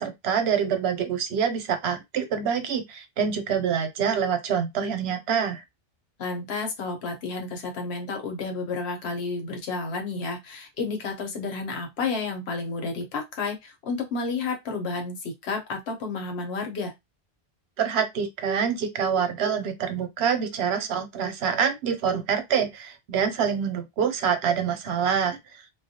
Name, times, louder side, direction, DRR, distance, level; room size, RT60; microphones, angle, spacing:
voice 1, 0.0-5.6 17.8-25.6, right 7 dB, 85° right, 0.9 m, -26 dB
voice 2, 6.2-16.9, left 4 dB, 80° left, 1.0 m, -31 dB
2.3 x 2.1 x 2.7 m
omnidirectional pair, 1.1 m